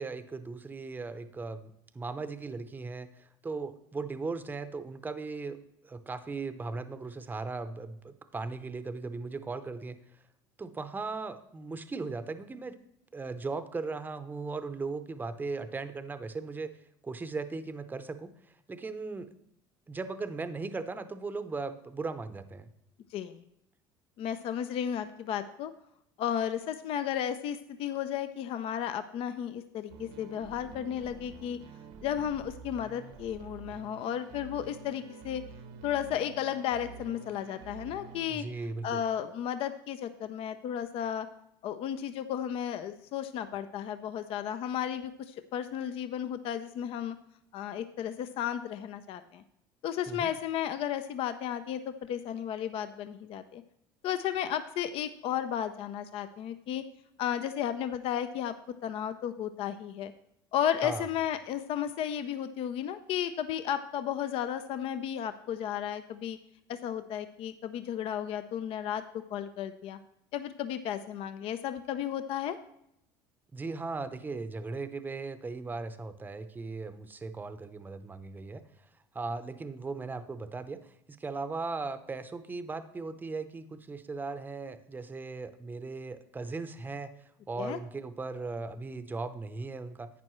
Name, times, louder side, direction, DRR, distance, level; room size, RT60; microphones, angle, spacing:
voice 1, 0.0-5.6 5.8-10.0 10.6-12.8 13.1-16.7 17.0-19.3 19.9-22.7 38.3-39.0 50.1-50.3 60.8-61.1 73.5-78.7 79.1-80.8 81.1-90.1, right 3 dB, 15° right, 11 dB, 0.7 m, -38 dB
voice 2, 23.1-23.4 24.2-25.7 26.2-31.6 32.0-35.4 35.8-38.4 38.8-41.3 41.6-47.2 47.5-49.4 49.8-53.6 54.0-56.8 57.2-58.5 58.8-60.1 60.5-66.4 66.7-70.0 70.3-72.6 87.6-87.8, left 9 dB, 55° left, 10 dB, 0.6 m, -33 dB
sound 1, 29.9-38.4, right 5 dB, 75° right, 1.1 m, -48 dB
11.0 x 8.6 x 3.1 m, 0.77 s
supercardioid pair, 90°, 11 cm